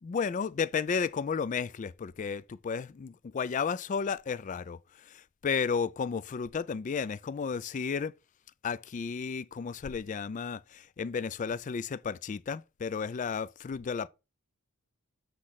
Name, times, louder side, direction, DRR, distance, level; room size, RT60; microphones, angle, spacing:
voice 1, 0.0-8.1 8.6-14.1, left 6 dB, 35° left, 0.3 m, -33 dB
8.4 x 3.2 x 5.6 m
head